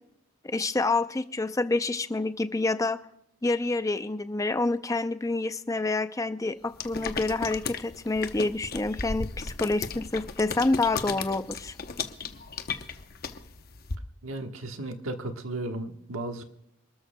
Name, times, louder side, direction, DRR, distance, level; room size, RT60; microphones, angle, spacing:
voice 1, 0.4-3.0 3.4-11.7, left 2 dB, 15° left, 11 dB, 0.5 m, -28 dB
sound 1, 6.8-13.9, left 5 dB, 45° left, 0.8 m, -35 dB
voice 2, 14.2-16.4, right 2 dB, 80° right, 5 dB, 1.4 m, -35 dB
26.5 x 13.0 x 2.2 m, 0.77 s
head